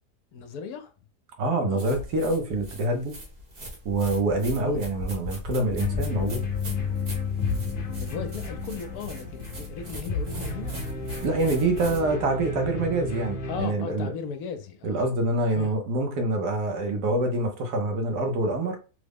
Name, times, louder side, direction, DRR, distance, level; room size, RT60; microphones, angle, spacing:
voice 1, 0.3-0.9 1.7-1.9 4.6-4.8 7.5-7.7 8.0-10.8 13.5-15.0 15.6-15.7, left 6 dB, 75° left, 1.0 m, -37 dB
voice 2, 1.4-3.2 3.8-6.5 11.2-14.1 14.8-18.8, right 2 dB, 80° right, 1.3 m, -26 dB
sound 1, 1.8-12.0, left 1 dB, 50° right, 1.4 m, -39 dB
sound 2, 5.8-13.6, left 4 dB, 55° left, 0.8 m, -32 dB
3.6 x 2.1 x 3.4 m
omnidirectional pair, 1.7 m